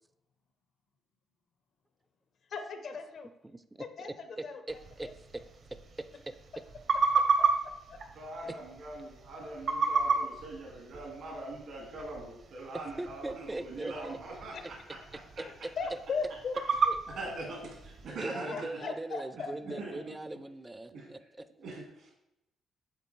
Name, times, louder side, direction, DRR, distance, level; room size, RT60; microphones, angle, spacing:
voice 1, 2.5-3.3 4.0-4.6 7.1-7.4 7.9-8.1 14.5-14.6 15.4-16.6 18.3-19.8, left 5 dB, 60° left, 7 dB, 0.8 m, -38 dB
voice 2, 3.4-3.9 4.4-5.4 6.0-6.4 8.5-8.6 13.0-14.2 14.6-14.7 15.4-16.0 18.1-21.5, right 2 dB, 15° right, 12 dB, 0.4 m, -40 dB
sound 1, 4.7-18.2, right 4 dB, 60° right, 0.7 m, -34 dB
voice 3, 8.1-14.8 17.1-18.8 19.8-20.2 20.9-21.1 21.6-22.1, right 2 dB, 75° right, 0 dB, 1.5 m, -42 dB
8.4 x 3.8 x 3.1 m, 0.87 s
cardioid pair, 90°, 0 cm